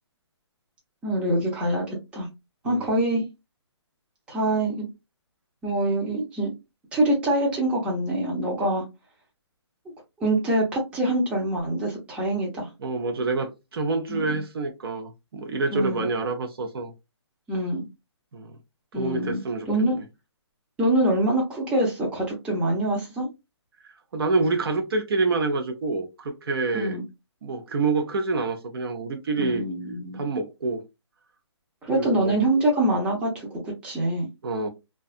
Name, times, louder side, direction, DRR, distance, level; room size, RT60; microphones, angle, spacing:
voice 1, 1.0-2.3 2.6-3.3 4.3-4.9 5.6-6.5 6.9-8.8 10.2-12.7 14.1-14.4 15.7-16.1 17.5-17.9 18.9-19.4 19.7-20.0 20.8-23.3 26.7-27.0 29.4-30.3 31.9-34.3, right 1 dB, 10° right, 0.6 m, -25 dB
voice 2, 12.8-16.9 18.3-18.6 18.9-20.0 23.8-27.0 27.4-29.6 30.1-30.8 31.9-32.4 34.4-34.7, right 3 dB, 55° right, 0.6 m, -27 dB
2.6 x 2.3 x 2.4 m
hypercardioid pair, 155°, 15 cm